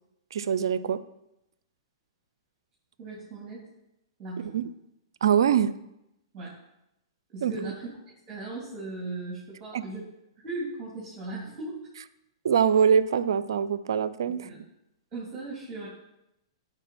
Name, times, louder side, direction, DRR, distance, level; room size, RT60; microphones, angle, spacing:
voice 1, 0.3-1.0 4.4-4.7 5.2-5.7 7.4-7.6 9.7-9.8 12.4-14.5, right 8 dB, 70° right, 16 dB, 0.5 m, -23 dB
voice 2, 3.0-3.7 4.2-4.6 6.3-6.6 7.3-7.9 8.3-10.1 10.4-11.9 14.4-14.6 15.1-15.9, right 2 dB, 30° right, -5 dB, 2.9 m, -37 dB
10.5 x 4.7 x 4.3 m, 0.86 s
hypercardioid pair, 120°, 2 cm